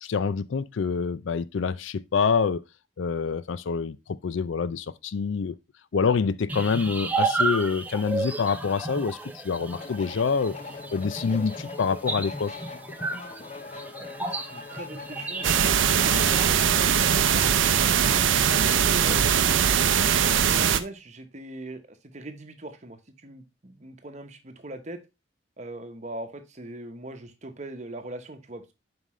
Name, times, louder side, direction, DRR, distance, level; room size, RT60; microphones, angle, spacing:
voice 1, 0.0-2.6 3.0-5.6 5.9-10.6 10.9-12.5, left 5 dB, 75° left, 0.4 m, -26 dB
sound 1, 6.5-16.5, right 3 dB, 10° right, 0.6 m, -32 dB
sound 2, 9.7-19.4, left 3 dB, 35° left, 0.7 m, -42 dB
voice 2, 14.0-16.3 16.7-19.6 20.0-25.0 25.6-28.7, right 1 dB, 35° right, 0.9 m, -40 dB
sound 3, 15.4-20.8, right 8 dB, 80° right, 0.5 m, -21 dB
7.4 x 5.3 x 3.1 m
head